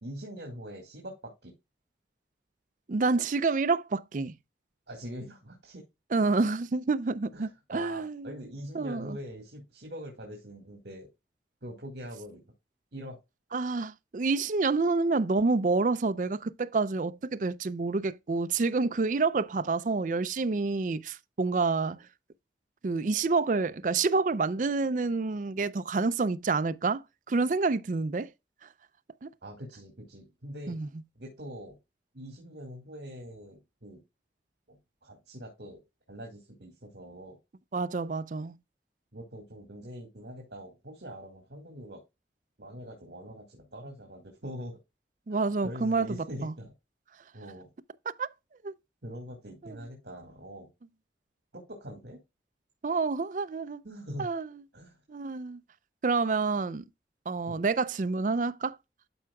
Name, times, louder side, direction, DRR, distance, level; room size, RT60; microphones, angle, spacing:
voice 1, 0.0-1.5 4.9-5.8 7.3-11.1 11.6-12.4 12.9-13.2 29.4-30.8 31.2-31.8 32.1-34.0 34.7-35.8 36.1-37.4 39.1-42.0 42.6-44.8 45.3-46.7 47.3-47.7 49.0-50.7 51.5-52.2 53.8-54.3 54.7-55.0 57.5-57.6, equal, 70° right, 2.1 m, -43 dB
voice 2, 2.9-4.3 6.1-8.3 8.7-9.2 13.5-22.1 22.8-28.3 28.6-28.7 29.2-29.3 30.7-30.9 37.7-38.5 45.3-46.5 48.2-48.3 48.6-48.7 49.6-49.8 52.8-53.8 54.2-54.5 55.1-55.6 56.0-56.8 57.3-58.8, right 3 dB, 45° right, 0.4 m, -28 dB
12.0 x 4.7 x 2.3 m
head